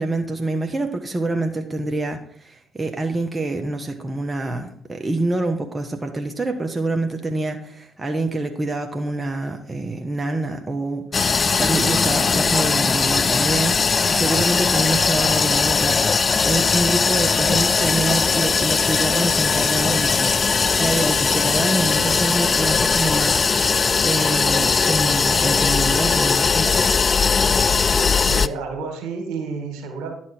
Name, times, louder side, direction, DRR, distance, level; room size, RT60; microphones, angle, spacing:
voice 1, 0.0-20.3 20.8-26.7, right 2 dB, 25° right, 4 dB, 1.3 m, -26 dB
sound 1, 11.1-28.5, left 5 dB, 40° left, 0.4 m, -19 dB
voice 2, 28.2-30.1, right 4 dB, 75° right, 4 dB, 2.1 m, -30 dB
11.0 x 6.1 x 4.5 m, 0.64 s
hypercardioid pair, 50°, 0 cm